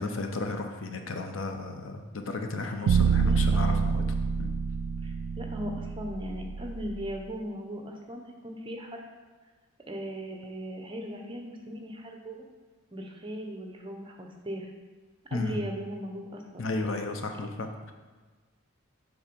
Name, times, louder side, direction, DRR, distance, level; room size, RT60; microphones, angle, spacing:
voice 1, 0.0-4.0 4.4-4.5 15.3-15.6 16.6-17.9, left 3 dB, 65° left, 5 dB, 0.7 m, -33 dB
sound 1, 2.9-7.1, right 5 dB, 75° right, 0.3 m, -27 dB
voice 2, 3.2-3.7 5.0-9.0 9.9-12.4 12.9-14.7 15.3-16.7, equal, 25° right, 2 dB, 0.7 m, -38 dB
7.3 x 3.9 x 5.2 m, 1.4 s
head